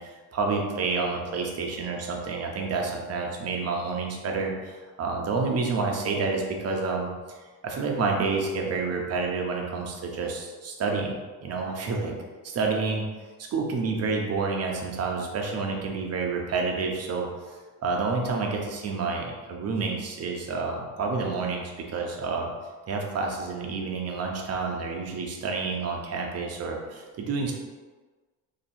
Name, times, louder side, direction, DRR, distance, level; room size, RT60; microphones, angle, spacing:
voice 1, 0.0-7.1 7.6-11.1 11.4-12.1 12.4-13.0 13.5-17.3 17.8-22.5 22.9-27.5, right 4 dB, 40° right, 1 dB, 0.7 m, -29 dB
2.9 x 2.8 x 4.2 m, 1.3 s
cardioid pair, 130°, 39 cm